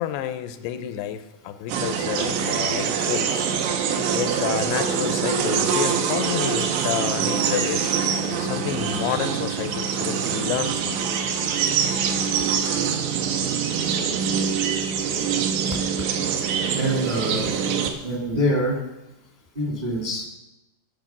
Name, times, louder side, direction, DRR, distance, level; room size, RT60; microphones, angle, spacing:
voice 1, 0.0-3.5 4.1-7.9 8.4-11.0 12.3-12.4, left 10 dB, 85° left, 10 dB, 2.7 m, -30 dB
sound 1, 1.7-17.9, right 7 dB, 85° right, 3.0 m, -24 dB
voice 2, 16.7-17.5 18.0-18.8 19.5-20.3, equal, 20° right, -1 dB, 1.1 m, -25 dB
16.0 x 5.4 x 6.0 m, 0.96 s
omnidirectional pair, 4.7 m